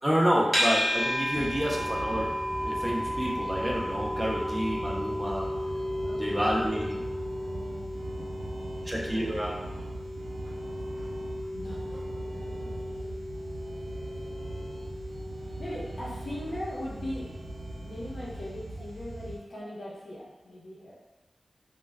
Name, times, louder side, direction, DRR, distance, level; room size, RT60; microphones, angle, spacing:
voice 1, 0.0-2.3 2.6-5.5 6.2-7.0 8.9-9.5, equal, 10° right, -3 dB, 0.4 m, -29 dB
sound 1, 0.5-17.7, equal, 15° left, 1.1 m, -34 dB
voice 2, 1.1-1.6 6.0-6.6 7.3-9.4 11.5-13.2 15.4-17.4 17.8-21.0, left 1 dB, 60° left, -6 dB, 0.8 m, -41 dB
sound 2, 1.3-19.4, right 2 dB, 80° right, 0.3 m, -40 dB
2.1 x 2.1 x 3.3 m, 1.1 s
wide cardioid pair, 85°, 0 cm